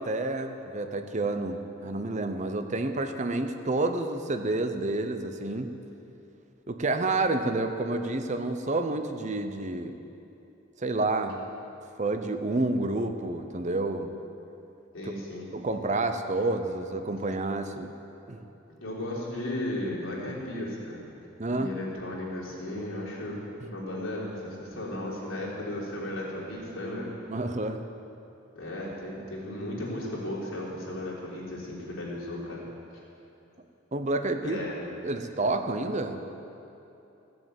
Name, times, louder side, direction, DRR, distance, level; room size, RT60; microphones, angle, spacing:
voice 1, 0.0-5.7 6.7-10.0 10.8-11.4 12.0-14.1 15.5-17.9 18.3-18.5 21.4-21.7 27.3-27.8 33.9-34.6 35.0-36.3, right 2 dB, 35° right, 7 dB, 0.8 m, -29 dB
voice 2, 14.9-15.5 18.8-21.0 21.5-23.4 23.7-27.1 28.6-32.6 34.4-34.8, left 1 dB, 75° left, -5 dB, 3.6 m, -35 dB
15.5 x 7.6 x 8.2 m, 2.8 s
head